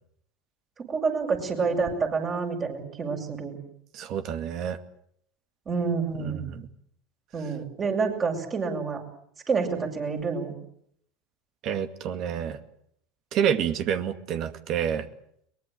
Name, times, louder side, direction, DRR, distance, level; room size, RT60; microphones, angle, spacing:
voice 1, 0.9-3.6 5.7-6.5 7.3-9.0 9.5-10.5, right 5 dB, 30° right, 3 dB, 7.3 m, -28 dB
voice 2, 3.9-4.8 6.2-6.7 11.6-12.6 13.3-15.1, right 8 dB, 50° right, 10 dB, 2.2 m, -28 dB
23.0 x 21.0 x 9.3 m, 0.69 s
hypercardioid pair, 80°, 0 cm